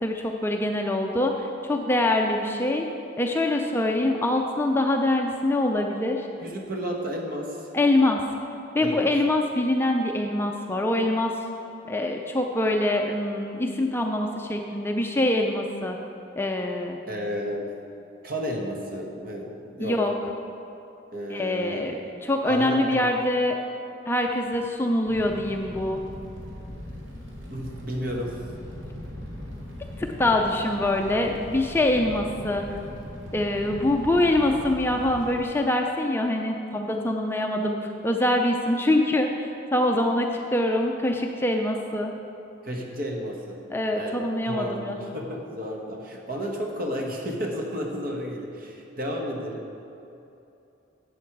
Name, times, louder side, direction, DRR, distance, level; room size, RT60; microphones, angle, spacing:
voice 1, 0.0-2.9 3.2-6.3 7.7-8.2 8.7-11.3 11.9-16.0 16.4-17.0 19.8-20.1 21.3-23.6 24.1-26.0 30.0-32.6 33.3-39.5 39.7-42.1 43.7-45.0, left 1 dB, 10° left, 2 dB, 0.4 m, -24 dB
voice 2, 6.4-7.7 8.8-9.1 17.1-17.7 18.2-20.0 21.1-22.2 22.5-23.0 27.5-28.4 42.6-43.6 43.9-44.2 44.4-49.7, equal, 50° right, 0 dB, 1.3 m, -32 dB
Fire, 25.1-35.4, left 1 dB, 80° right, 2.1 m, -40 dB
7.9 x 7.8 x 6.0 m, 2.8 s
head